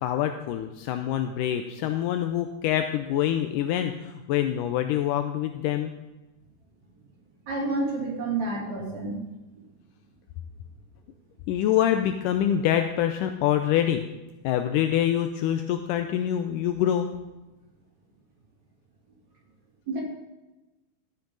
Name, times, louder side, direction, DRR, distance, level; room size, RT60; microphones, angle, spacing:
voice 1, 0.0-5.9 11.5-14.1 14.4-17.1, left 11 dB, 80° left, 7 dB, 2.1 m, -25 dB
voice 2, 7.5-9.2 19.9-20.0, right 2 dB, 55° right, -4 dB, 4.3 m, -29 dB
13.0 x 10.0 x 3.9 m, 1.1 s
omnidirectional pair, 4.0 m